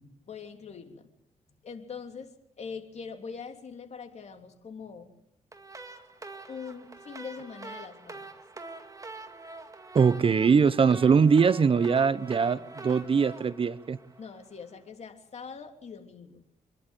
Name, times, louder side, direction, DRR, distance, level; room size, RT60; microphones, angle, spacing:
voice 1, 0.3-1.1 1.6-5.1 6.5-8.3 14.2-16.4, left 5 dB, 50° left, 3.2 m, -42 dB
sound 1, 5.5-14.6, right 3 dB, 25° right, 2.2 m, -45 dB
voice 2, 9.9-14.0, right 6 dB, 40° right, 0.7 m, -22 dB
27.0 x 11.5 x 9.2 m
cardioid pair, 90°, 14 cm